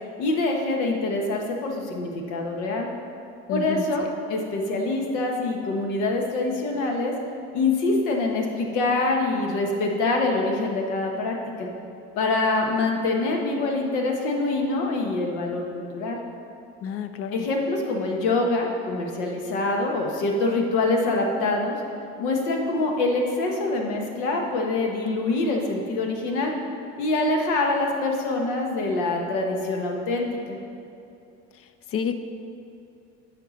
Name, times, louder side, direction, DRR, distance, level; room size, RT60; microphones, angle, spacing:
voice 1, 0.2-2.9 3.5-7.1 7.5-11.7 12.2-16.2 17.3-21.8 22.2-26.5 27.0-30.6, left 2 dB, 85° left, 1 dB, 1.2 m, -25 dB
voice 2, 3.5-3.9 16.8-17.5 31.9-32.2, left 7 dB, 45° left, 9 dB, 0.6 m, -29 dB
9.1 x 5.6 x 4.1 m, 2.7 s
supercardioid pair, 80°, 33 cm